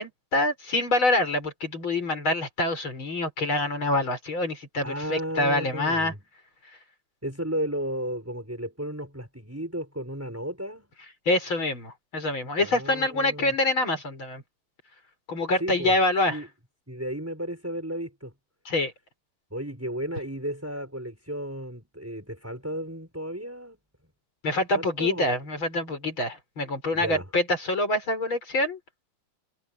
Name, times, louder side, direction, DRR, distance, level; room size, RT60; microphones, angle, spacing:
voice 1, 0.0-6.1 11.3-14.4 15.3-16.4 18.7-18.9 24.4-28.8, left 2 dB, 80° left, 7.1 m, -26 dB
voice 2, 4.8-6.2 7.2-10.9 12.6-13.6 15.6-15.9 16.3-16.5 16.9-18.3 19.5-23.8 24.7-25.3 26.9-27.3, equal, 5° right, 6.8 m, -34 dB
omnidirectional pair, 2.2 m